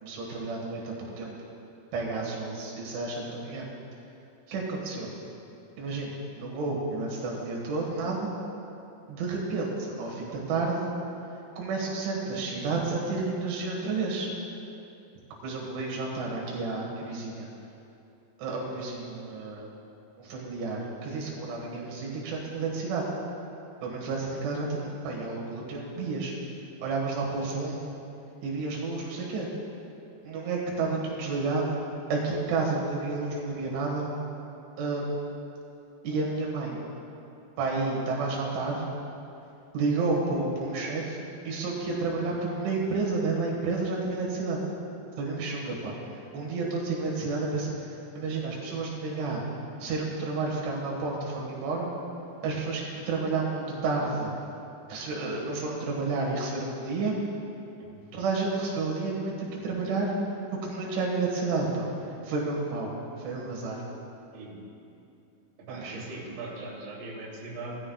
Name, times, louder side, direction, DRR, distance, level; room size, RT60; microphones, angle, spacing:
voice 1, 0.0-1.3 1.9-3.7 4.5-5.1 5.8-8.3 9.1-10.9 11.6-14.3 15.4-17.5 18.4-19.7 20.2-23.1 23.8-26.3 26.8-28.0 28.4-29.5 30.2-31.7 32.1-34.1 34.8-35.3 36.0-36.8 37.6-38.9 39.7-44.6 45.2-49.4 49.8-51.9 52.4-54.3 54.9-57.2 58.1-60.1 60.5-62.9 63.2-63.8 65.7-66.1, right 3 dB, 85° right, -3 dB, 4.1 m, -31 dB
voice 2, 64.3-64.6 65.7-67.8, right 2 dB, 55° right, -6 dB, 4.1 m, -40 dB
19.5 x 14.0 x 2.3 m, 2.7 s
omnidirectional pair, 5.3 m